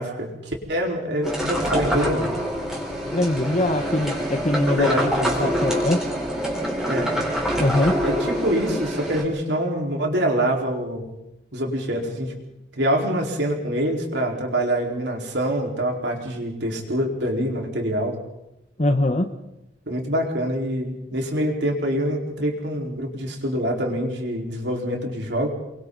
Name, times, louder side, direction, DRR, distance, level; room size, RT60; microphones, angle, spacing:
voice 1, 0.0-2.3 4.6-5.7 6.8-7.1 8.0-11.1 11.5-12.3 12.8-18.2 19.9-25.5, equal, 70° right, 0 dB, 4.7 m, -25 dB
sound 1, 1.2-9.2, equal, 5° right, 4.6 m, -26 dB
voice 2, 3.1-4.9 5.4-6.0 7.6-8.0 18.8-19.3, left 1 dB, 35° left, 6 dB, 1.2 m, -22 dB
29.5 x 23.0 x 4.1 m, 0.88 s
head